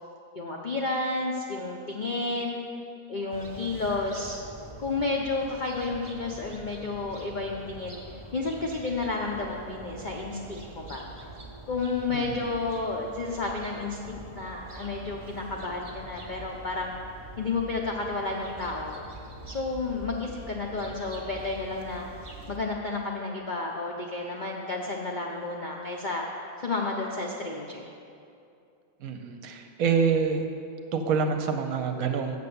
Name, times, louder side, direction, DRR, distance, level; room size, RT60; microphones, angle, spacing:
voice 1, 0.3-2.6 3.1-4.4 4.8-11.1 11.7-17.0 17.4-19.0 19.5-22.1 22.5-26.3 26.6-27.9, left 3 dB, 60° left, -1 dB, 0.5 m, -31 dB
sound 1, 3.3-22.6, right 1 dB, 25° right, 0.7 m, -45 dB
voice 2, 12.1-12.5 29.0-30.5 30.9-32.4, right 5 dB, 70° right, 6 dB, 1.0 m, -27 dB
6.8 x 6.7 x 6.8 m, 2.5 s
omnidirectional pair, 1.7 m